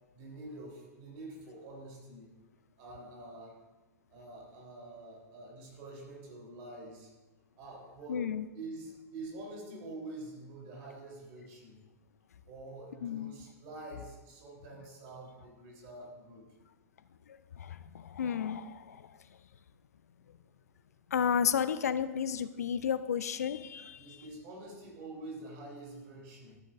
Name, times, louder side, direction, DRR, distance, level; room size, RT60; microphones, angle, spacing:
voice 1, 0.1-2.3 2.8-3.6 4.1-7.1 7.6-11.8 12.5-16.4 24.0-26.6, right 2 dB, 40° right, -1 dB, 3.4 m, -46 dB
voice 2, 8.1-8.4 13.0-13.3 17.6-19.0 21.1-24.0, left 7 dB, 65° left, 14 dB, 0.4 m, -32 dB
14.0 x 8.4 x 2.5 m, 1.1 s
figure-of-eight pair, 95°, 9 cm